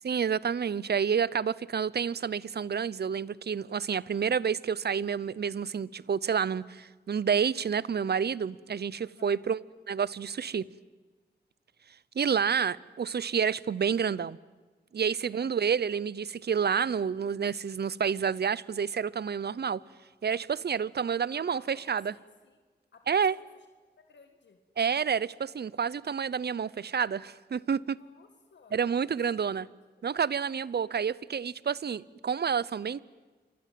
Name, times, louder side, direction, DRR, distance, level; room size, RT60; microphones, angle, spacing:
voice 1, 0.0-9.6 9.9-10.7 12.1-14.4 14.9-19.8 20.2-22.1 23.1-23.3 24.8-28.0 28.7-29.7 30.0-33.0, right 7 dB, 65° right, 0.7 m, -29 dB
voice 2, 9.0-9.4 15.2-15.6 20.8-21.0 21.3-22.6 22.9-23.7 24.1-24.6 28.0-28.8 29.2-29.6 30.0-30.1, left 5 dB, 85° left, 2.0 m, -57 dB
29.0 x 24.0 x 7.7 m
cardioid pair, 60°, 18 cm